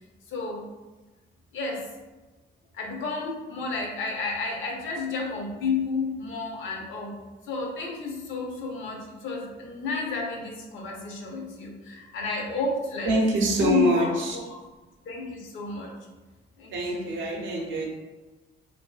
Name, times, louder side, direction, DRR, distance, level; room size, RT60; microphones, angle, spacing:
voice 1, 0.3-0.6 1.5-1.8 2.7-7.2 7.5-13.1 13.4-14.1 15.1-15.9 16.6-17.1, left 3 dB, 80° left, 0 dB, 0.6 m, -31 dB
voice 2, 13.0-14.4 16.7-17.9, right 1 dB, 70° right, -1 dB, 0.5 m, -25 dB
2.5 x 2.3 x 2.2 m, 1.2 s
cardioid pair, 90°, 20 cm